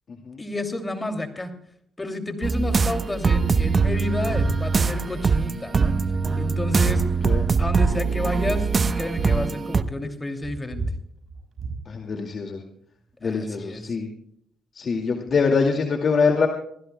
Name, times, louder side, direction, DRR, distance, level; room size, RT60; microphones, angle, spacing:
voice 1, 0.4-1.5 2.0-5.9 6.4-7.0 7.6-8.7 9.0-10.8 13.2-13.9, left 2 dB, 20° left, 5 dB, 2.7 m, -30 dB
sound 1, 2.4-9.8, right 5 dB, 40° right, 0.9 m, -22 dB
sound 2, 4.3-4.5 4.8-5.3 5.7-5.8 6.1-7.0 7.6-7.9 8.1-8.2 8.4-10.1 10.4-11.8, right 3 dB, 55° right, 6.1 m, -31 dB
voice 2, 11.9-12.6 13.2-14.1 14.8-16.5, left 5 dB, 50° left, 3 dB, 2.2 m, -23 dB
26.5 x 16.5 x 2.3 m, 0.70 s
cardioid pair, 80°, 0 cm